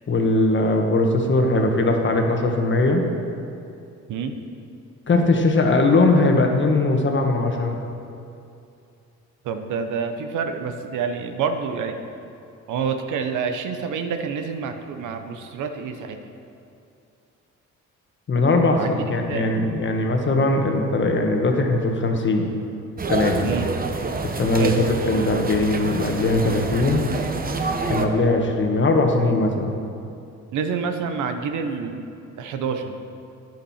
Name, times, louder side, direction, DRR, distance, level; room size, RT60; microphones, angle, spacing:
voice 1, 0.1-3.1 5.1-7.8 18.3-22.5 23.1-23.4 24.2-27.0 27.9-29.7, left 2 dB, 40° left, 2 dB, 1.5 m, -20 dB
voice 2, 9.4-11.9 12.7-16.2 18.7-18.9 19.3-19.5 23.4-23.7 24.6-24.8 30.5-32.1 32.4-32.9, right 6 dB, 80° right, 7 dB, 0.9 m, -27 dB
sound 1, 23.0-28.1, right 3 dB, 30° right, 0.9 m, -27 dB
10.5 x 10.5 x 4.3 m, 2.6 s
cardioid pair, 90°, 30 cm